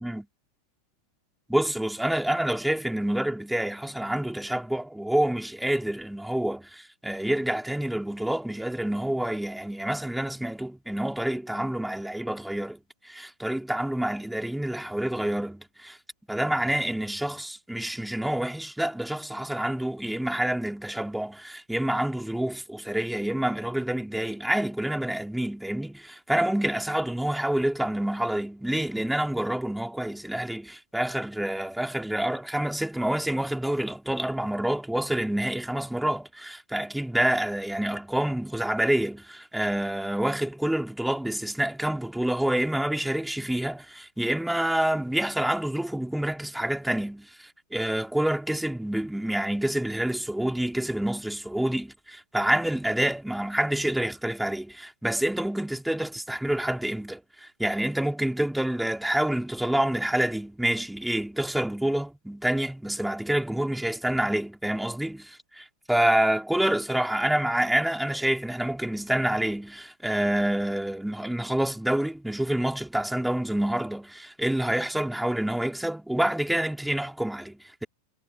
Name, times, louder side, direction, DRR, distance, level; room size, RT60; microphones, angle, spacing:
voice 1, 1.5-16.0 16.3-77.9, right 1 dB, ahead, 3.8 m, -27 dB
figure-of-eight pair, 90°, 0 cm